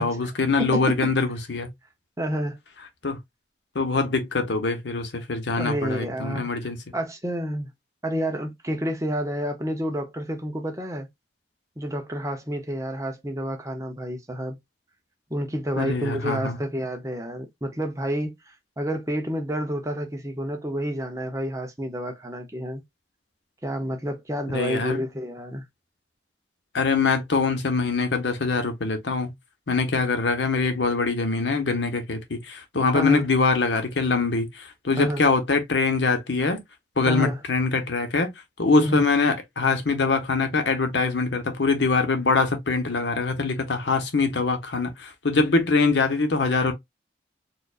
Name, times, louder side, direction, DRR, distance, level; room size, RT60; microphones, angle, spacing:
voice 1, 0.0-1.7 3.0-3.2 3.7-6.8 15.8-16.6 24.5-25.0 26.7-29.3 29.7-36.6 37.0-38.3 38.6-46.7, left 4 dB, 80° left, 0.9 m, -23 dB
voice 2, 0.6-1.1 2.2-2.6 5.6-7.7 8.0-11.1 11.8-14.6 15.3-22.8 23.6-25.6 32.9-33.3 35.0-35.2 37.1-37.4 38.8-39.0, equal, 15° right, 0.7 m, -29 dB
4.3 x 2.5 x 2.4 m
head